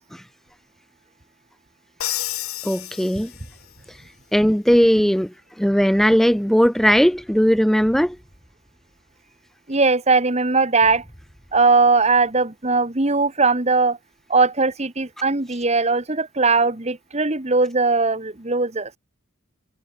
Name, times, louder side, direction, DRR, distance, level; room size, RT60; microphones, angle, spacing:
Crash cymbal, 2.0-3.7, left 14 dB, 80° left, 1.3 m, -30 dB
voice 1, 2.6-3.3 3.9-4.0 4.3-5.3 5.6-8.2, equal, ahead, 0.6 m, -18 dB
sound 1, 3.3-4.7 6.8-9.7 10.8-13.0, equal, 15° left, 6.5 m, -51 dB
voice 2, 9.7-11.0 11.5-14.0 14.3-18.9, right 4 dB, 30° right, 1.5 m, -19 dB
head